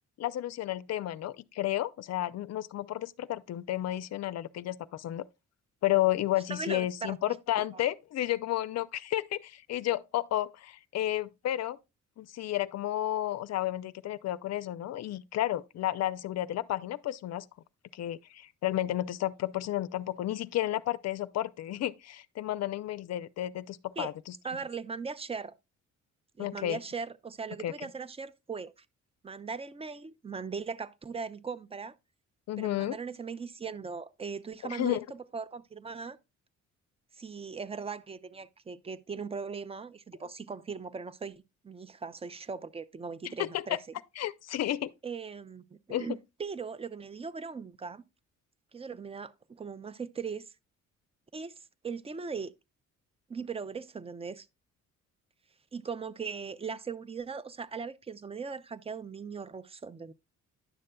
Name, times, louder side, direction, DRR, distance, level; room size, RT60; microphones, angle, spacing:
voice 1, 0.2-5.2 5.8-11.8 12.2-17.5 17.9-24.3 26.4-26.8 27.6-27.7 32.5-33.0 34.7-35.0 43.4-43.8 44.2-44.9 45.9-46.1, left 13 dB, 60° left, 0.5 m, -32 dB
voice 2, 6.5-7.2 7.6-7.7 24.0-24.1 24.4-25.5 26.4-28.7 29.2-31.9 32.6-36.2 37.1-43.8 45.0-48.0 48.7-50.5 51.3-52.5 53.3-54.5 55.7-60.1, right 5 dB, 20° right, 0.4 m, -39 dB
10.0 x 6.4 x 2.2 m
cardioid pair, 90°, 30 cm